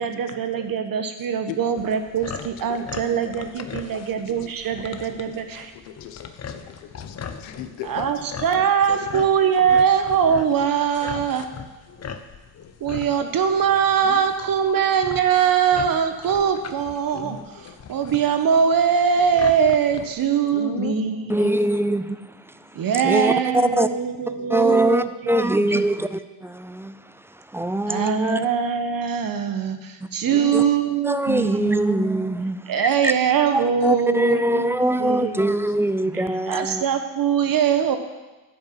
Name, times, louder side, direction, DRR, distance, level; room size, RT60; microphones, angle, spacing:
voice 1, 0.0-5.7 7.8-11.5 12.8-21.5 22.7-25.8 27.9-32.1 32.7-35.5 36.1-38.0, right 7 dB, 45° right, 7 dB, 1.2 m, -22 dB
sound 1, 1.8-20.3, left 6 dB, 35° left, 1.0 m, -39 dB
voice 2, 2.7-4.0 5.1-5.2 5.9-8.1 8.5-8.6 8.9-9.0 14.0-14.2 20.5-21.7 24.4-24.5 25.6-25.9 30.2-30.7 34.1-34.3 35.7-35.9, left 10 dB, 75° left, 9 dB, 1.2 m, -37 dB
voice 3, 21.3-22.2 23.0-23.9 24.5-26.9 27.5-28.4 30.5-30.6 31.0-33.1 33.5-36.8, right 1 dB, 5° right, 12 dB, 0.4 m, -22 dB
10.0 x 6.3 x 7.6 m, 1.2 s
supercardioid pair, 75°, 47 cm